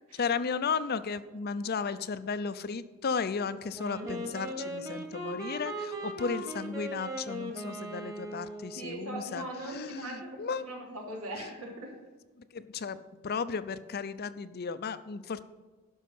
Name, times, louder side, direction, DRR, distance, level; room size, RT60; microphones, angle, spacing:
voice 1, 0.2-10.6 12.5-15.5, left 5 dB, 45° left, 14 dB, 0.5 m, -34 dB
Wind instrument woodwind instrument, 3.7-8.9, right 1 dB, 15° right, 1.5 m, -38 dB
voice 2, 4.0-4.7 8.7-11.9, right 1 dB, 85° right, 0 dB, 3.1 m, -41 dB
12.0 x 5.5 x 7.6 m, 1.3 s
head